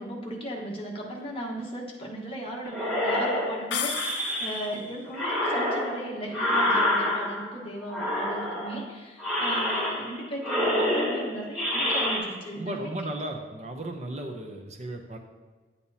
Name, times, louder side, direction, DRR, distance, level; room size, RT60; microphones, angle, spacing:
voice 1, 0.0-13.1, right 1 dB, 30° left, -2 dB, 1.2 m, -36 dB
sound 1, 2.7-4.8 5.1-7.5 7.9-8.8 9.2-10.2 10.4-12.2, left 1 dB, ahead, 2.9 m, -27 dB
sound 2, 3.7-4.8, left 8 dB, 70° left, 0.5 m, -33 dB
voice 2, 12.6-15.2, right 1 dB, 35° right, 3 dB, 0.6 m, -35 dB
9.7 x 8.8 x 2.8 m, 1.3 s
head